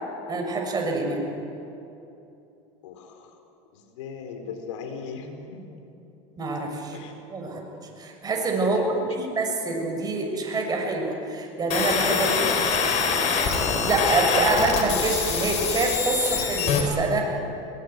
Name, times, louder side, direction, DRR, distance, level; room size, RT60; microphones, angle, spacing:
voice 1, 0.3-1.2 6.4-7.0 7.3-7.6 8.0-8.8 9.1-12.3 13.8-17.4, right 3 dB, 25° right, 1 dB, 6.7 m, -26 dB
voice 2, 2.8-3.3 3.7-5.7 6.9-7.1 8.6-8.9 12.1-12.6, left 6 dB, 80° left, 5 dB, 4.4 m, -35 dB
sound 1, 11.7-16.8, left 6 dB, 45° left, 5.0 m, -24 dB
22.5 x 20.0 x 9.6 m, 2.9 s
supercardioid pair, 105°, 15 cm